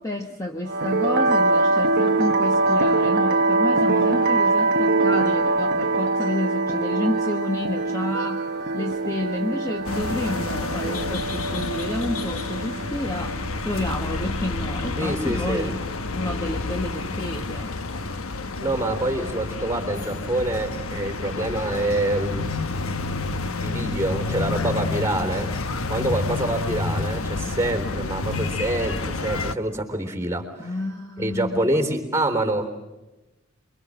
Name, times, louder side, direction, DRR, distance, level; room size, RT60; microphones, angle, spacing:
voice 1, 0.0-8.5 8.7-15.8 16.1-17.8 30.6-31.7, left 1 dB, 15° left, 2 dB, 1.2 m, -30 dB
sound 1, 0.7-14.8, right 3 dB, 55° right, 0.9 m, -23 dB
sound 2, 9.8-29.5, left 3 dB, 85° left, 1.2 m, -29 dB
voice 2, 15.0-15.7 18.6-22.4 23.6-25.6 25.9-30.7 31.2-32.7, right 1 dB, 15° right, 6 dB, 3.5 m, -26 dB
28.0 x 23.5 x 7.7 m, 1.1 s
head